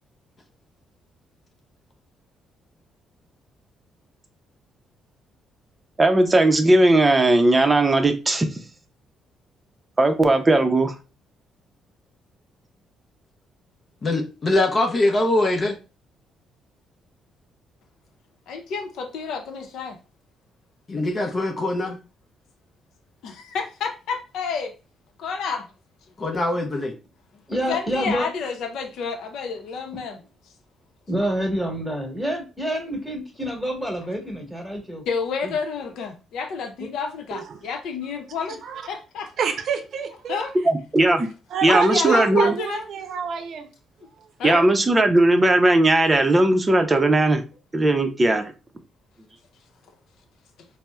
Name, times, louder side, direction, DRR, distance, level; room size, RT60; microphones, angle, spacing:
voice 1, 6.0-8.6 10.0-10.9 40.7-41.3 41.6-42.5 44.4-47.4 47.7-48.5, right 2 dB, 20° right, 0.5 m, -18 dB
voice 2, 14.0-15.8 20.9-22.0 26.2-26.9, left 2 dB, 40° left, 0.6 m, -22 dB
voice 3, 18.5-20.0 23.2-24.7 25.2-25.6 27.7-30.2 35.1-38.6 38.9-39.3 40.3-40.5 41.7-42.8 44.4-44.7, left 5 dB, 80° left, 0.6 m, -29 dB
voice 4, 27.5-28.3 29.9-30.0 31.1-35.0 35.4-35.5 36.8-36.9, equal, 5° left, 1.2 m, -27 dB
voice 5, 37.3-37.6 38.6-38.8 39.4-40.4 41.5-43.7, right 7 dB, 65° right, 0.6 m, -27 dB
4.1 x 2.0 x 2.3 m
cardioid pair, 90°, 0 cm